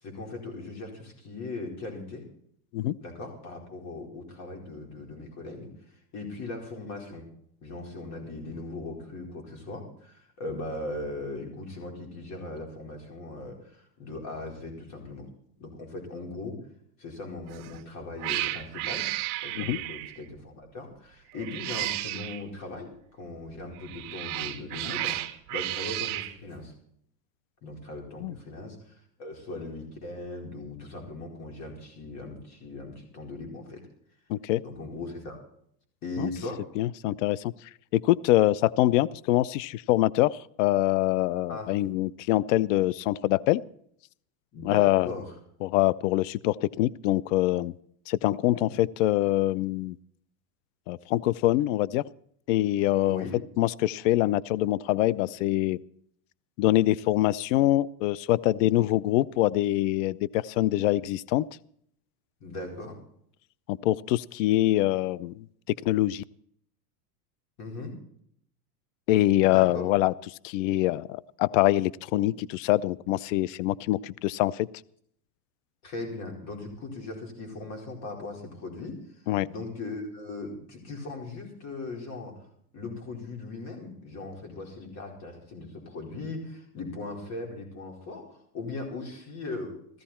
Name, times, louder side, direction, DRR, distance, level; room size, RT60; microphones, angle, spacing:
voice 1, 0.0-2.2 3.0-5.7 6.1-7.3 7.6-15.3 15.6-16.6 17.0-19.1 19.4-26.7 27.6-33.8 34.6-35.4 36.0-36.6 41.5-41.7 44.5-45.3 48.5-48.7 53.0-53.4 62.4-63.0 67.6-67.9 69.4-69.8 75.8-82.4 82.7-90.0, left 2 dB, 30° left, 2 dB, 4.7 m, -39 dB
Cat, 17.5-17.8 18.2-20.2 21.3-22.4 23.8-26.3, right 16 dB, 50° right, 1.4 m, -33 dB
voice 2, 34.3-34.6 36.2-36.3 36.8-37.5 37.9-43.6 44.6-45.1 45.6-47.7 48.1-50.0 50.9-52.0 52.5-53.2 53.6-55.8 56.6-61.4 63.7-65.4 65.9-66.2 69.1-70.1 70.4-74.7 79.3-79.5, left 16 dB, 50° left, 23 dB, 0.5 m, -24 dB
16.0 x 14.0 x 4.3 m, 0.66 s
supercardioid pair, 155°, 50 cm